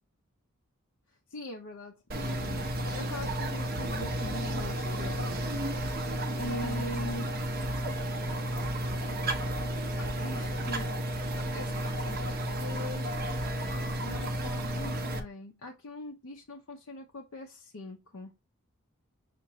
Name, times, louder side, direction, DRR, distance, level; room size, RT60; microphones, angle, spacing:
voice 1, 1.3-5.3 6.3-7.2 9.9-11.0 11.4-13.2 14.0-18.3, left 1 dB, 80° left, 0.7 m, -42 dB
sound 1, 2.1-15.2, right 1 dB, 45° right, 0.8 m, -32 dB
5.8 x 2.5 x 2.9 m
head